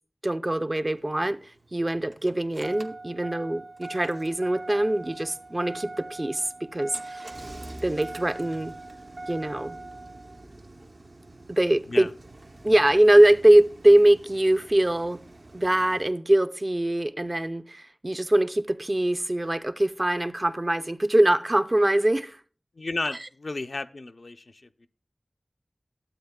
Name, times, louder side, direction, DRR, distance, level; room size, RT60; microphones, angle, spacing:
voice 1, 0.2-7.3 7.8-8.8 9.3-9.8 11.5-12.1 12.6-15.2 15.5-22.4 23.1-23.3, right 1 dB, 40° right, 0.5 m, -22 dB
Engine starting, 1.0-16.1, right 2 dB, 70° right, 0.7 m, -42 dB
voice 2, 22.8-24.4, left 2 dB, 80° left, 0.4 m, -32 dB
13.0 x 7.7 x 2.2 m
wide cardioid pair, 45°, 0 cm